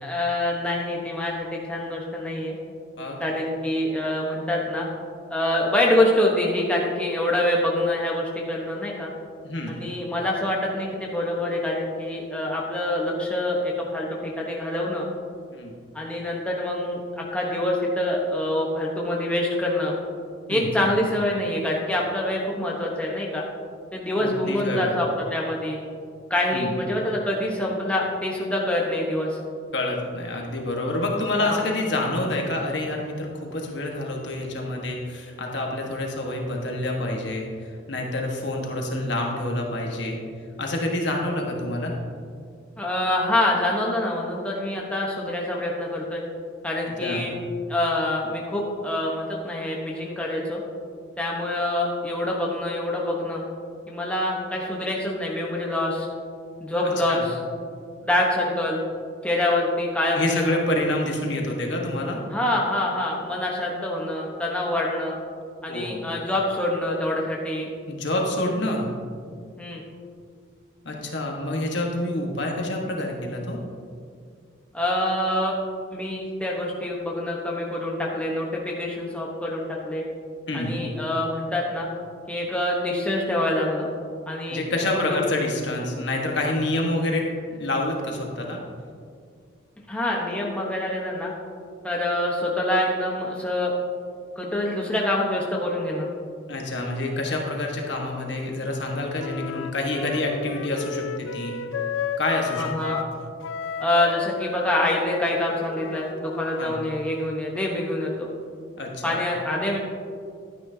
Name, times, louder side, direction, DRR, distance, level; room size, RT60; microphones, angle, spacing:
voice 1, 0.0-2.5 3.2-4.9 5.3-9.1 9.7-15.1 15.9-19.9 20.5-23.4 23.9-25.8 26.3-29.4 31.4-31.6 42.8-46.2 46.6-47.3 47.7-50.6 51.2-53.4 53.9-56.1 56.6-57.4 58.0-58.8 59.2-60.6 62.3-65.2 65.6-67.7 69.6-69.8 74.7-75.6 75.9-80.0 80.5-81.9 82.3-83.9 84.3-84.6 84.9-85.2 89.9-91.3 91.8-93.7 94.4-96.1 102.6-103.0 103.8-108.3 109.0-109.8, left 1 dB, 5° left, -3 dB, 1.0 m, -26 dB
voice 2, 9.4-9.8 15.5-15.7 20.5-20.7 24.2-25.0 26.5-26.7 29.7-40.2 40.6-41.9 47.0-47.3 56.8-57.2 60.1-62.2 65.7-66.0 67.9-68.9 70.8-73.6 80.5-80.7 84.5-87.2 87.5-88.6 96.5-101.6 102.2-103.0 106.6-106.8 108.8-109.2, left 1 dB, 65° left, 0 dB, 1.4 m, -27 dB
Wind instrument woodwind instrument, 99.2-103.1 103.4-107.4, left 7 dB, 85° left, 0.4 m, -33 dB
11.5 x 9.8 x 2.8 m, 2.1 s
head